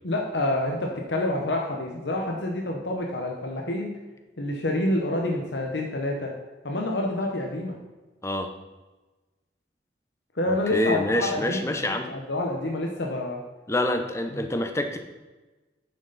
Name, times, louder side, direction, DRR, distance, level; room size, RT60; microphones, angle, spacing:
voice 1, 0.0-3.9 4.4-6.3 6.6-7.8 10.3-11.8 12.1-13.4 14.3-14.4, left 1 dB, 85° left, 0 dB, 1.1 m, -28 dB
voice 2, 10.7-12.1 13.7-15.0, left 1 dB, 15° left, 6 dB, 0.7 m, -26 dB
9.7 x 7.1 x 4.1 m, 1.2 s
head